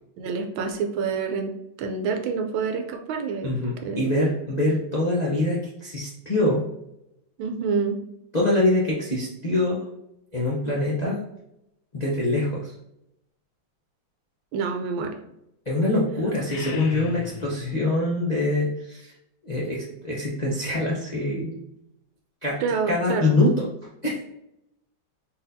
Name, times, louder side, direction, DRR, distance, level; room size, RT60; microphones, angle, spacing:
voice 1, 0.2-1.5 1.8-3.5 3.8-4.1 7.4-8.0 14.5-15.2 22.6-23.4, right 5 dB, 85° right, 4 dB, 1.4 m, -27 dB
voice 2, 3.4-6.6 8.3-9.8 10.3-11.2 11.9-12.7 15.7-19.1 19.4-21.6 22.4-22.6 22.9-23.7 24.0-24.2, left 2 dB, 55° left, -6 dB, 0.4 m, -24 dB
sound 1, 16.3-17.9, left 9 dB, 85° left, 1.4 m, -36 dB
4.1 x 4.1 x 2.6 m, 0.82 s
omnidirectional pair, 2.1 m